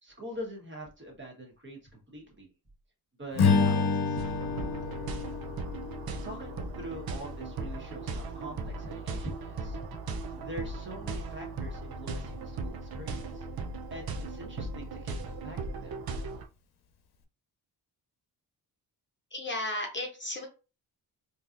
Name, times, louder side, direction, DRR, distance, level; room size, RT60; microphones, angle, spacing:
voice 1, 0.0-2.5 3.2-4.4 6.2-13.4 13.9-15.9, equal, 25° right, 0 dB, 1.4 m, -44 dB
Strum, 3.3-7.8, left 4 dB, 65° left, 0.8 m, -29 dB
sound 1, 4.2-16.5, right 3 dB, 60° right, 0.7 m, -38 dB
voice 2, 19.3-20.5, left 1 dB, 25° left, 1 dB, 0.8 m, -34 dB
3.8 x 2.9 x 2.6 m, 0.32 s
cardioid pair, 100°, 41 cm